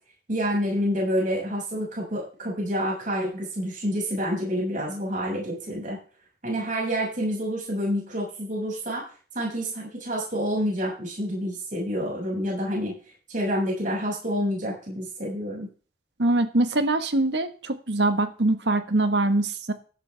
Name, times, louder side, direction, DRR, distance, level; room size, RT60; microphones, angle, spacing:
voice 1, 0.3-6.0 6.4-9.0 9.3-13.0 13.3-15.7, equal, 45° right, -3 dB, 6.8 m, -28 dB
voice 2, 16.2-19.7, right 2 dB, 70° right, 9 dB, 1.6 m, -23 dB
13.5 x 12.0 x 3.5 m, 0.39 s
head